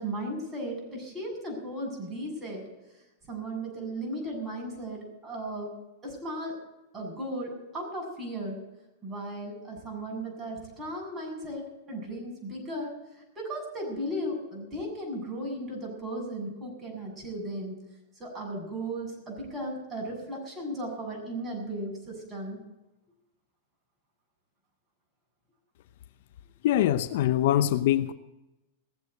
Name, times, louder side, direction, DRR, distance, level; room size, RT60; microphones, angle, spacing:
voice 1, 0.0-2.7 3.3-5.8 6.0-6.6 6.9-8.6 9.0-17.8 18.1-22.6, right 1 dB, 15° right, 7.5 m, -36 dB
voice 2, 26.6-28.1, left 12 dB, 65° left, 0.8 m, -23 dB
19.0 x 7.9 x 8.0 m
hypercardioid pair, 120°, 0 cm